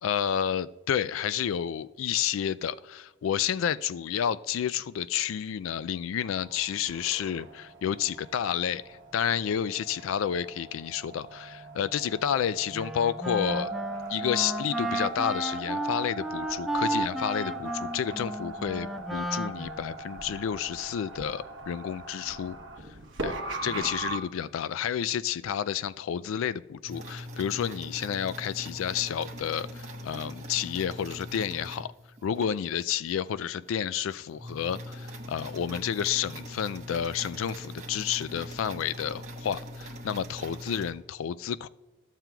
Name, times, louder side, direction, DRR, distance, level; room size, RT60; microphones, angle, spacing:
voice 1, 0.0-13.7 14.1-22.6 23.2-23.4 23.6-31.9 32.2-41.7, left 9 dB, 80° left, 0.3 m, -30 dB
sound 1, 6.2-24.2, right 2 dB, 65° right, 1.0 m, -40 dB
Wind instrument woodwind instrument, 12.7-20.1, right 1 dB, ahead, 0.3 m, -33 dB
sound 2, 26.8-32.5 33.1-33.2 33.6-33.7 34.0-40.9, equal, 35° right, 1.0 m, -41 dB
14.0 x 7.4 x 2.3 m
head